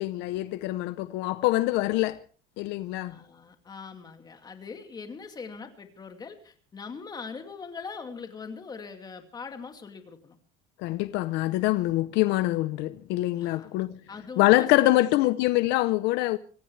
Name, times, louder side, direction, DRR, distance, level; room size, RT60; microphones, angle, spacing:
voice 1, 0.0-2.2 2.6-3.1 10.8-13.9 14.4-16.4, left 17 dB, 65° left, 0.8 m, -24 dB
voice 2, 3.0-10.4 13.4-13.8 14.1-15.3, left 5 dB, 20° left, 2.3 m, -42 dB
25.0 x 16.0 x 3.3 m
cardioid pair, 145°, 19 cm